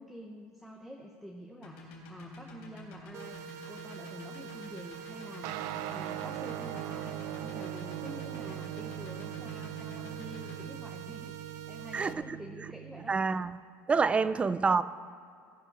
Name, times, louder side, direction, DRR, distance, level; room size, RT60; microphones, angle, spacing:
voice 1, 0.0-13.2 14.1-14.4, equal, ahead, 0 dB, 1.0 m, -48 dB
sound 1, 1.6-10.6, right 1 dB, 90° left, 3.8 m, -48 dB
sound 2, 3.1-12.1, right 9 dB, 50° right, 0.9 m, -46 dB
sound 3, 5.4-13.2, right 13 dB, 75° right, 0.6 m, -41 dB
voice 2, 11.9-12.4 13.1-13.5 13.9-14.8, right 4 dB, 20° right, 15 dB, 0.4 m, -27 dB
17.5 x 6.7 x 5.9 m, 2.3 s
cardioid pair, 135°, 7 cm